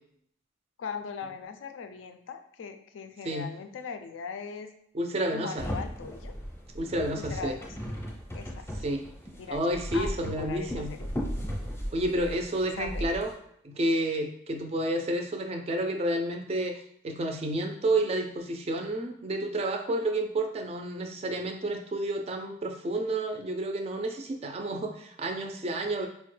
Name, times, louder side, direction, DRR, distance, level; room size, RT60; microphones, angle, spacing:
voice 1, 0.8-4.7 5.3-6.4 7.1-7.7 8.3-8.7 9.4-11.1 12.8-13.0, left 6 dB, 80° left, 8 dB, 0.3 m, -40 dB
voice 2, 4.9-5.7 6.7-7.6 8.8-9.1 9.5-10.9 11.9-13.3 13.6-16.7 17.0-26.1, right 1 dB, 30° right, 5 dB, 0.3 m, -30 dB
sound 1, 5.6-13.3, equal, 15° left, 0.6 m, -36 dB
4.2 x 2.1 x 3.1 m, 0.70 s
head